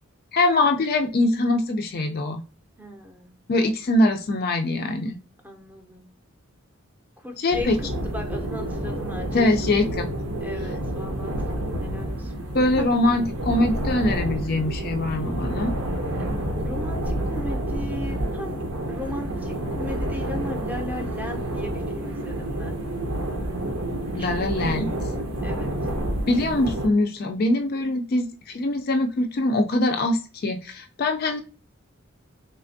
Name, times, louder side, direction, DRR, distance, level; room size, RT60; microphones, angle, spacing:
voice 1, 0.3-2.4 3.5-5.2 7.4-7.8 9.3-10.1 12.5-15.7 24.1-24.9 26.3-31.4, left 2 dB, 45° left, 5 dB, 0.3 m, -23 dB
voice 2, 2.8-3.3 5.4-6.1 7.2-9.5 10.4-12.9 16.2-18.6 18.9-22.8 24.1-25.7, left 1 dB, 10° right, 3 dB, 0.6 m, -37 dB
sound 1, 7.5-26.9, right 1 dB, 80° right, 0.8 m, -29 dB
3.3 x 3.2 x 2.5 m, 0.35 s
head